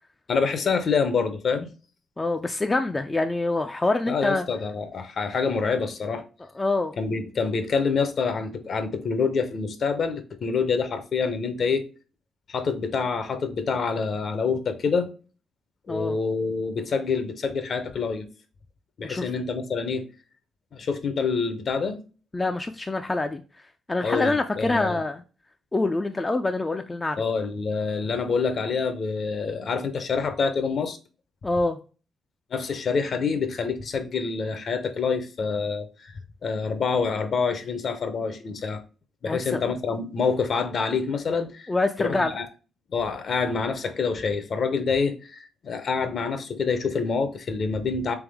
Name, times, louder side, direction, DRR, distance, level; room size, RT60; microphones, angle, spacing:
voice 1, 0.3-1.7 4.1-6.2 7.0-11.9 12.5-15.1 15.9-18.2 19.0-20.0 20.7-22.0 24.0-25.0 27.2-31.0 32.5-35.9 36.4-38.8 39.2-41.7 42.0-42.5 42.9-48.2, left 5 dB, 55° left, 0.7 m, -26 dB
voice 2, 2.2-4.5 6.6-7.0 15.9-16.2 19.0-19.3 22.3-23.4 23.9-25.2 25.7-27.2 31.4-31.8 39.2-39.7 41.7-42.3, left 2 dB, 20° left, 0.4 m, -25 dB
3.5 x 3.5 x 3.4 m
cardioid pair, 95°, 0 cm